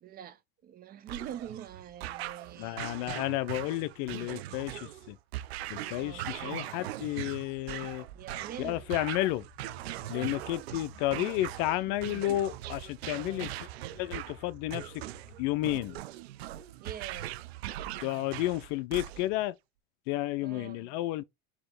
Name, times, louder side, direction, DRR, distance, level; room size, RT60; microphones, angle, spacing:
voice 1, 0.0-2.9 6.0-6.3 8.1-8.8 9.8-10.4 13.1-13.5 16.8-17.4 20.4-20.9, right 10 dB, 30° right, 0.5 m, -44 dB
sound 1, 1.1-19.5, right 14 dB, 85° right, 0.5 m, -40 dB
voice 2, 2.6-5.2 5.7-8.1 8.6-9.5 10.1-13.7 14.0-15.0 15.4-16.0 18.0-19.6 20.1-21.2, left 15 dB, 55° left, 0.5 m, -32 dB
sound 2, 8.2-16.0, left 2 dB, 30° left, 1.7 m, -54 dB
4.3 x 2.9 x 3.9 m
hypercardioid pair, 105°, 31 cm